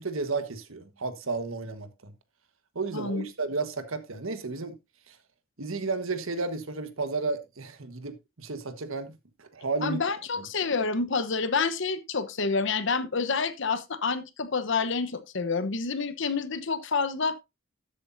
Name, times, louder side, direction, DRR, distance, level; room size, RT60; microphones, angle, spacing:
voice 1, 0.0-2.1 2.7-4.8 5.1-5.2 5.6-10.0 10.4-10.5, right 3 dB, 80° right, 1.4 m, -33 dB
voice 2, 2.9-3.2 9.8-17.3, left 4 dB, 60° left, 1.0 m, -28 dB
13.0 x 8.3 x 2.6 m
head